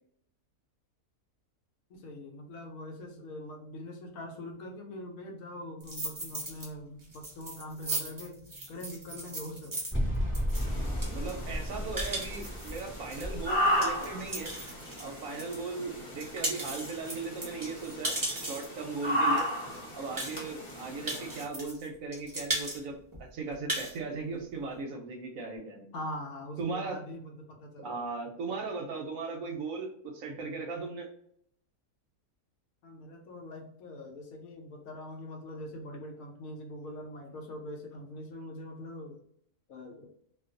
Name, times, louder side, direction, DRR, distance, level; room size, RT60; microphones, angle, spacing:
voice 1, 1.9-8.4 8.7-9.8 15.7-16.1 21.1-21.4 25.9-28.0 32.8-39.2 39.7-40.1, left 1 dB, 70° left, 2 dB, 1.0 m, -43 dB
sound 1, 5.8-6.7 7.0-15.6 16.0-18.8 19.4-19.5 19.7-19.8 20.2-20.7 21.1-21.9 22.1-22.8 23.1-23.2 23.5-24.0, right 1 dB, 30° right, 0.4 m, -37 dB
sound 2, 9.9-15.1, equal, 10° left, 0.6 m, -34 dB
sound 3, 10.5-21.4, equal, 40° left, 0.8 m, -35 dB
voice 2, 10.7-14.5 15.0-18.2 18.4-19.5 19.9-25.9 26.6-27.0 27.8-31.1, right 4 dB, 70° right, 2 dB, 0.9 m, -38 dB
2.4 x 2.3 x 2.4 m, 0.67 s
omnidirectional pair, 1.6 m